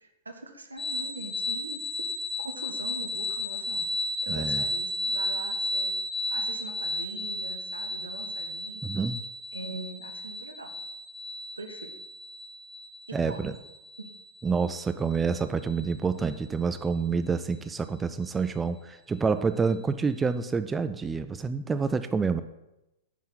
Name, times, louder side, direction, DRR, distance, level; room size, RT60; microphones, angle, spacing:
voice 1, 0.0-1.8 2.4-3.9 4.2-5.9 6.3-8.8 9.5-10.7 11.6-11.9 13.1-13.6 14.0-14.1, right 2 dB, 80° right, 4 dB, 1.0 m, -41 dB
sound 1, 0.8-16.3, left 1 dB, 5° left, 1.8 m, -33 dB
voice 2, 4.3-4.6 8.8-9.2 13.1-13.5 14.4-22.4, right 5 dB, 15° right, 10 dB, 0.3 m, -28 dB
9.5 x 3.7 x 5.7 m, 0.93 s
figure-of-eight pair, 100°, 0 cm